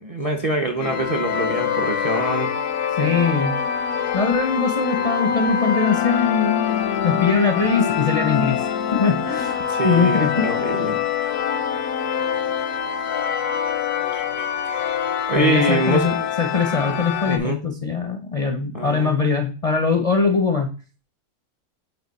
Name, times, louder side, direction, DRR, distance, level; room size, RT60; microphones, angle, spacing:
voice 1, 0.0-2.5 9.7-11.0 14.1-14.9 15.3-16.1 17.2-17.6 18.7-19.1, right 1 dB, 35° right, 4 dB, 0.6 m, -24 dB
sound 1, 0.8-17.4, left 8 dB, 85° left, 1.2 m, -24 dB
voice 2, 3.0-3.6 4.1-6.7 7.0-8.6 8.9-10.8 15.3-20.7, left 5 dB, 45° left, 5 dB, 0.4 m, -22 dB
8.0 x 2.9 x 4.0 m, 0.35 s
omnidirectional pair, 1.6 m